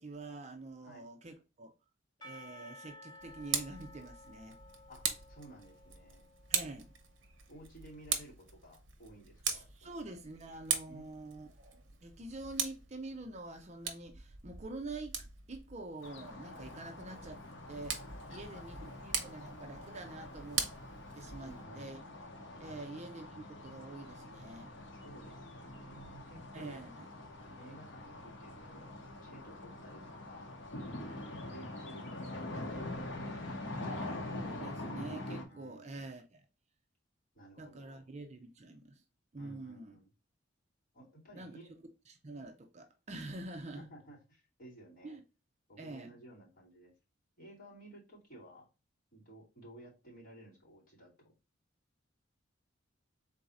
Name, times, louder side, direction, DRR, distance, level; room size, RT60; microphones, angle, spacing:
voice 1, 0.0-1.7 2.2-4.6 6.5-6.9 9.4-15.2 15.5-17.4 17.7-18.0 18.3-18.8 19.0-20.7 21.1-22.0 22.6-24.7 26.5-27.1 34.4-36.4 37.6-39.0 39.3-40.0 41.3-41.5 42.1-43.9 45.0-45.2 45.8-46.1, right 2 dB, 35° right, 0.5 m, -46 dB
Percussion / Church bell, 2.2-7.0, left 1 dB, 20° left, 0.6 m, -55 dB
Tick, 3.2-21.6, right 7 dB, 65° right, 0.8 m, -41 dB
voice 2, 4.9-6.2 7.5-9.9 10.9-11.1 18.3-18.9 21.4-21.9 22.7-22.8 24.9-26.9 27.6-28.9 29.2-30.5 31.1-33.8 35.5-36.2 37.3-38.1 39.4-40.1 40.9-41.8 43.7-45.2 45.7-46.9 47.4-48.7 49.1-51.3, right 1 dB, 45° left, 2.6 m, -55 dB
sound 1, 16.0-35.4, left 1 dB, 65° left, 1.0 m, -45 dB
3.9 x 2.7 x 4.7 m
head